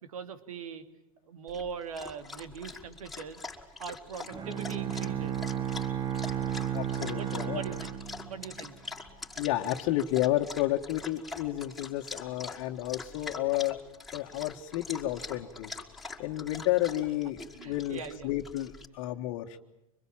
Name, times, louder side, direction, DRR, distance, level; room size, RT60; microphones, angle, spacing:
voice 1, 0.0-0.9 1.3-3.4 3.8-5.4 7.0-7.9 8.3-8.7 17.6-18.3, right 6 dB, 85° right, 9 dB, 2.5 m, -41 dB
Dog, 1.5-18.8, left 3 dB, ahead, 4.7 m, -44 dB
Bowed string instrument, 4.3-8.7, right 10 dB, 25° right, 2.1 m, -33 dB
voice 2, 6.7-7.6 9.4-13.8 14.1-15.8 16.2-17.4 17.6-19.6, left 15 dB, 55° left, 0 dB, 1.7 m, -31 dB
26.5 x 21.5 x 8.9 m, 0.91 s
hypercardioid pair, 115°, 18 cm